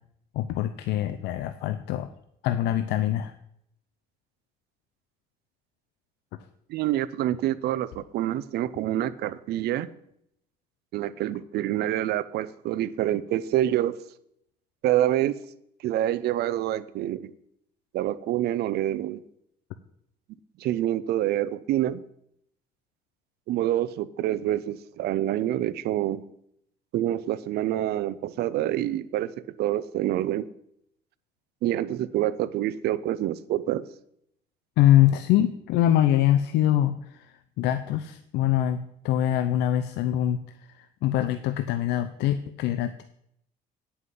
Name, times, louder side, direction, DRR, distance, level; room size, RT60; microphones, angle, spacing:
voice 1, 0.3-2.1 2.4-3.3 34.8-40.4 40.7-43.0, left 12 dB, 85° left, 10 dB, 0.6 m, -24 dB
voice 2, 6.7-9.9 10.9-14.0 14.8-15.4 15.8-17.3 17.9-19.2 20.6-22.0 23.5-26.2 26.9-30.5 31.6-33.8, right 13 dB, 75° right, 17 dB, 0.6 m, -27 dB
9.4 x 5.6 x 8.3 m, 0.74 s
cardioid pair, 110°, 17 cm